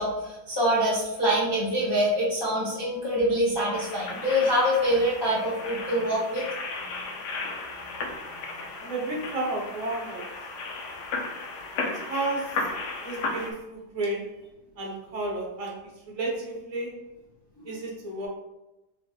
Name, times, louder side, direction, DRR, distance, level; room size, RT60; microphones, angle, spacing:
voice 1, 0.0-6.4 17.7-17.8, equal, 20° left, -7 dB, 0.8 m, -25 dB
sound 1, 3.7-13.5, left 3 dB, 85° left, 1.2 m, -35 dB
voice 2, 8.8-10.3 12.1-12.6 13.0-14.3 14.8-17.0 17.6-18.3, right 2 dB, 30° right, -2 dB, 0.8 m, -32 dB
4.7 x 3.1 x 2.9 m, 0.98 s
omnidirectional pair, 1.8 m